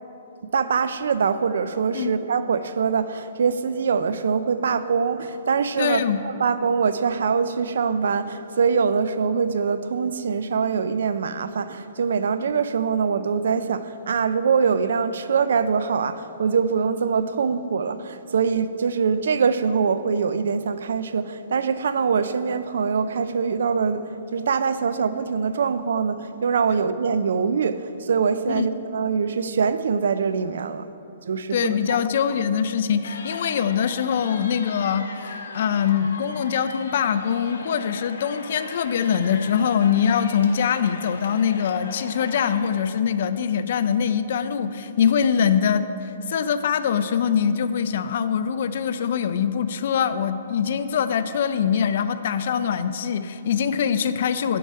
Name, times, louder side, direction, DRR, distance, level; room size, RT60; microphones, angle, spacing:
voice 1, 0.5-30.9 31.2-31.7, right 5 dB, 75° right, 13 dB, 0.4 m, -23 dB
voice 2, 5.8-6.2 28.5-28.7 31.5-54.6, left 7 dB, 50° left, 12 dB, 0.4 m, -23 dB
sound 1, 33.0-42.7, left 3 dB, 90° left, 0.8 m, -39 dB
11.0 x 4.7 x 4.6 m, 2.9 s
hypercardioid pair, 165°, 0 cm